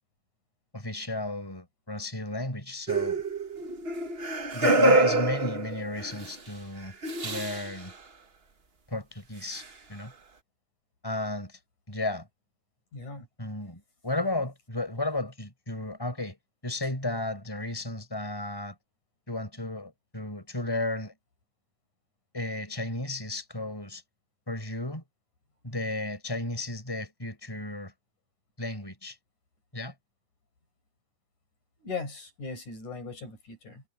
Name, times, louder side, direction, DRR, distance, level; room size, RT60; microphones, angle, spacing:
voice 1, 0.7-3.2 4.5-7.0 7.2-7.9 8.9-9.6 9.9-10.1 11.0-11.6 11.9-12.3 13.4-16.4 16.6-18.8 19.3-21.1 22.3-24.0 24.5-25.0 25.6-27.9 28.6-29.2 29.7-29.9, left 2 dB, 5° left, 5.9 m, -33 dB
sound 1, 2.9-6.3 7.0-7.7 9.5-9.6, right 2 dB, 60° right, 0.6 m, -26 dB
voice 2, 12.9-13.3 31.8-33.8, left 4 dB, 75° left, 8.6 m, -38 dB
omnidirectional pair, 3.5 m